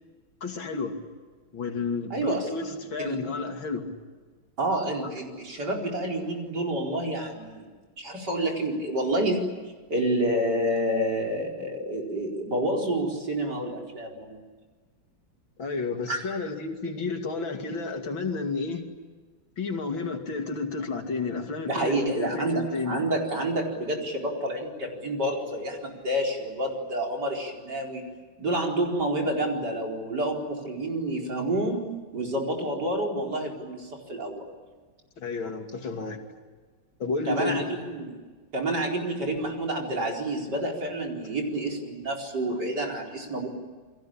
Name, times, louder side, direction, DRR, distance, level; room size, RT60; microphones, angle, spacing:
voice 1, 0.4-1.0 1.5-3.9 15.6-18.8 19.6-23.0 35.2-36.2 37.0-37.8 42.5-42.6, left 4 dB, 85° left, 4 dB, 3.4 m, -31 dB
voice 2, 2.1-2.5 3.0-3.2 4.6-7.7 8.0-9.4 9.9-14.4 16.1-16.2 21.7-28.0 28.4-34.5 37.3-38.2 38.5-43.5, right 1 dB, 60° right, 0 dB, 5.1 m, -29 dB
29.5 x 22.5 x 8.8 m, 1.4 s
omnidirectional pair, 2.1 m